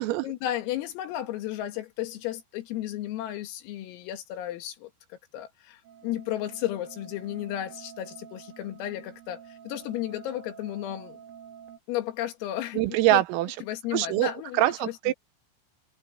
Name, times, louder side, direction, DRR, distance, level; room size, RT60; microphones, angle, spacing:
voice 1, 0.2-4.9 5.3-11.2 11.9-12.8 13.1-13.2 13.6-15.1, left 13 dB, 85° left, 4.7 m, -33 dB
sound 1, 5.8-11.8, right 9 dB, 75° right, 4.4 m, -48 dB
voice 2, 12.8-13.6 13.9-15.1, right 16 dB, 90° right, 3.7 m, -24 dB
omnidirectional pair, 5.9 m